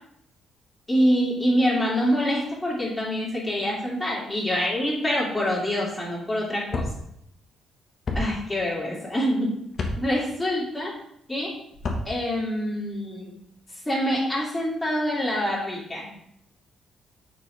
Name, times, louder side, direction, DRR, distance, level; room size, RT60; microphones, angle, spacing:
voice 1, 0.9-6.8 8.1-9.6 10.0-10.9 11.3-11.5 12.1-13.3 13.8-16.1, equal, 15° left, -4 dB, 2.5 m, -25 dB
sound 1, 6.7-6.9 8.1-8.2 9.7-10.0 11.7-12.0, left 2 dB, 45° left, 1.2 m, -27 dB
6.5 x 5.4 x 3.3 m, 0.75 s
cardioid pair, 90°, 0 cm